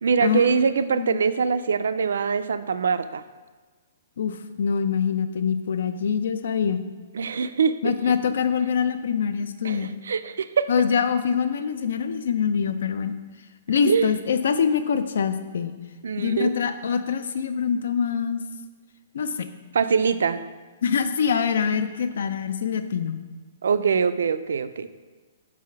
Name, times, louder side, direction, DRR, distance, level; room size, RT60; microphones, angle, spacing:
voice 1, 0.0-3.2 7.1-7.7 9.6-10.7 13.8-14.1 16.0-16.5 19.7-20.4 23.6-24.9, right 6 dB, 90° right, 12 dB, 0.3 m, -23 dB
voice 2, 4.2-6.8 7.8-9.9 10.7-13.1 13.7-15.8 16.2-18.4 19.1-19.5 20.8-23.2, left 7 dB, 60° left, 10 dB, 0.4 m, -24 dB
4.8 x 4.1 x 5.7 m, 1.3 s
hypercardioid pair, 180°, 0 cm